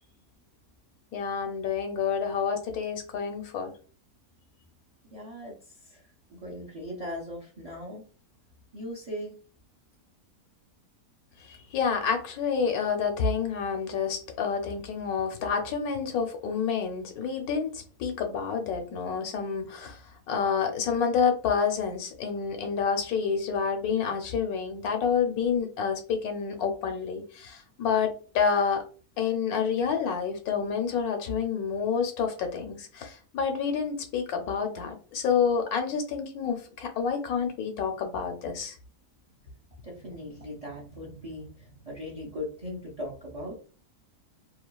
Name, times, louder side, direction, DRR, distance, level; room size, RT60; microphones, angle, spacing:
voice 1, 1.1-3.7 11.5-20.0 20.3-28.8 29.2-38.7, left 6 dB, 85° left, 5 dB, 1.1 m, -28 dB
voice 2, 5.1-5.5 5.8-6.0 6.3-8.0 8.7-9.4 39.8-43.6, left 1 dB, 40° right, -3 dB, 0.5 m, -39 dB
2.8 x 2.4 x 2.2 m, 0.38 s
omnidirectional pair, 1.6 m